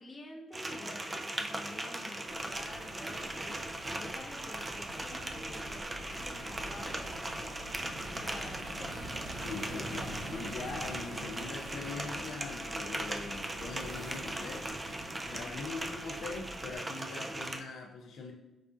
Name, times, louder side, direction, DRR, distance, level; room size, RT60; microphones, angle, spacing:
voice 1, 0.0-7.7 8.0-9.2 15.3-15.6, left 2 dB, 25° left, 0 dB, 0.7 m, -49 dB
sound 1, 0.5-17.6, right 1 dB, 20° right, 0.3 m, -39 dB
sound 2, 2.2-16.8, equal, 45° right, 1.1 m, -46 dB
sound 3, 5.3-14.7, right 1 dB, 80° right, 0.9 m, -57 dB
voice 2, 9.4-14.7 15.3-18.3, left 4 dB, 70° left, 1 dB, 0.4 m, -42 dB
4.7 x 2.4 x 2.4 m, 1.0 s
cardioid pair, 90°, 0 cm